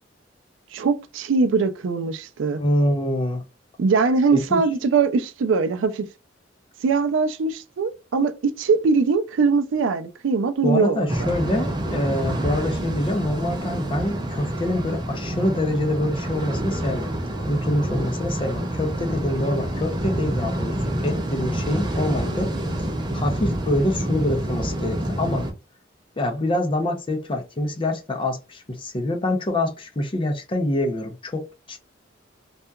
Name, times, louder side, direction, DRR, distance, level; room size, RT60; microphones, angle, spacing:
voice 1, 0.7-2.6 3.8-6.1 6.8-11.3, right 4 dB, 80° right, 0.4 m, -22 dB
voice 2, 2.6-3.4 4.3-4.6 10.6-17.1 17.4-22.5 23.1-25.5 26.2-31.8, left 1 dB, 30° left, 0.5 m, -25 dB
sound 1, 11.1-25.5, right 1 dB, 25° right, 0.5 m, -27 dB
2.8 x 2.3 x 2.2 m
head